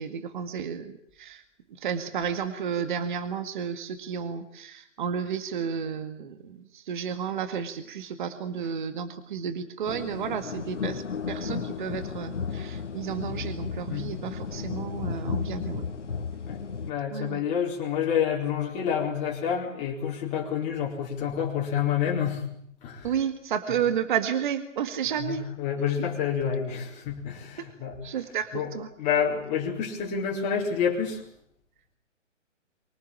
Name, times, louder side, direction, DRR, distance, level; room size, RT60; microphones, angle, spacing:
voice 1, 0.0-1.4 1.7-15.9 17.1-17.4 23.0-25.5 27.6-27.7 28.0-28.9, right 7 dB, 40° right, 10 dB, 2.0 m, -32 dB
sound 1, 9.9-16.9, left 6 dB, 70° left, 2.4 m, -34 dB
voice 2, 16.9-22.5 22.8-23.1 25.2-27.9 28.5-28.7 29.0-31.2, left 8 dB, 20° left, -2 dB, 4.5 m, -28 dB
24.5 x 19.5 x 8.8 m, 0.67 s
hypercardioid pair, 155°, 38 cm